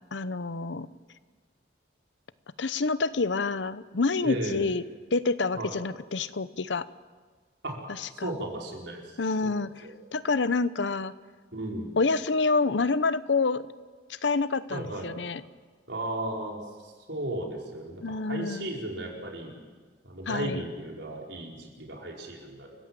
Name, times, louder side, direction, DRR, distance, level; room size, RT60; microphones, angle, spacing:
voice 1, 0.1-0.9 2.6-4.8 5.1-6.9 8.2-8.3 9.2-9.7 10.1-11.1 12.0-13.7 14.2-15.4 18.0-18.7 20.3-20.6, left 3 dB, 90° left, 15 dB, 0.8 m, -27 dB
voice 2, 4.2-4.6 5.5-5.8 7.6-7.8 8.1-10.0 11.5-11.9 14.7-15.1 15.9-19.5 20.0-22.7, right 1 dB, 85° right, -1 dB, 5.1 m, -35 dB
28.5 x 15.5 x 7.7 m, 1.5 s
head